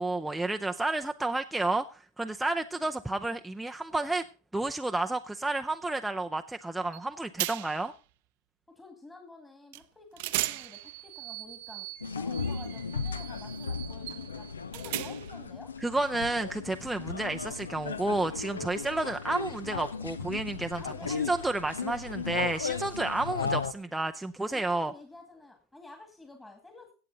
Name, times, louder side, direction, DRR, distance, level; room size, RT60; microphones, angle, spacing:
voice 1, 0.0-4.2 4.5-7.9 15.8-24.9, right 2 dB, 5° right, 0.5 m, -31 dB
sound 1, 6.9-7.1 7.4-7.9 9.7-9.8 10.2-15.5, right 18 dB, 65° right, 0.6 m, -37 dB
voice 2, 8.7-11.9 12.1-14.5 14.7-15.7 20.8-21.6 24.5-26.9, left 2 dB, 10° left, 2.1 m, -50 dB
sound 2, 12.0-23.7, left 5 dB, 85° left, 0.6 m, -36 dB
16.5 x 7.8 x 3.9 m
hypercardioid pair, 85°, 0 cm